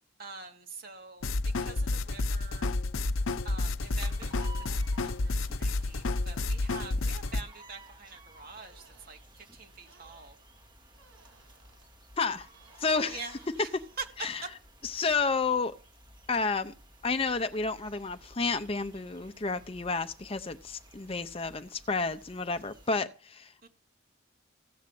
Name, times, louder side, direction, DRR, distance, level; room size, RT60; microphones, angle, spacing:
voice 1, 0.2-2.7 3.4-10.4 13.1-13.7 14.0-14.1 14.4-14.5 23.6-23.7, right 4 dB, 45° right, 2.4 m, -45 dB
sound 1, 1.2-7.4, left 2 dB, 80° left, 0.7 m, -30 dB
sound 2, 3.8-23.0, right 1 dB, 25° right, 2.9 m, -54 dB
sound 3, 7.9-8.0 8.5-9.2 9.9-10.3 11.0-11.9 12.5-13.8, right 3 dB, 85° right, 4.1 m, -61 dB
voice 2, 12.2-12.5 12.8-13.2 14.2-14.4 14.8-15.7 16.3-16.7 17.0-23.7, left 4 dB, 30° left, 0.6 m, -31 dB
15.5 x 7.4 x 7.6 m
head